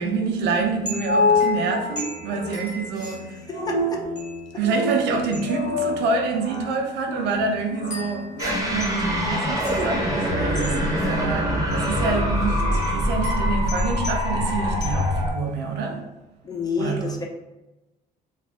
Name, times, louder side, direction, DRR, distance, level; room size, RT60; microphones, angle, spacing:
voice 1, 0.0-3.4 4.6-16.1 16.8-17.2, right 4 dB, 80° right, 0.6 m, -27 dB
sound 1, 0.6-13.5, left 3 dB, 70° left, 0.9 m, -29 dB
sound 2, 0.9-3.7 4.2-4.6 5.3-5.8 6.6-6.7 7.9-10.0 10.6-11.1 11.7-12.1 12.8-15.4, equal, 45° left, 1.1 m, -39 dB
voice 2, 3.5-4.0 16.4-17.3, left 4 dB, 20° left, 0.5 m, -29 dB
sound 3, 8.4-15.3, equal, 20° right, 0.8 m, -24 dB
2.5 x 2.3 x 3.4 m
cardioid pair, 110°, 17 cm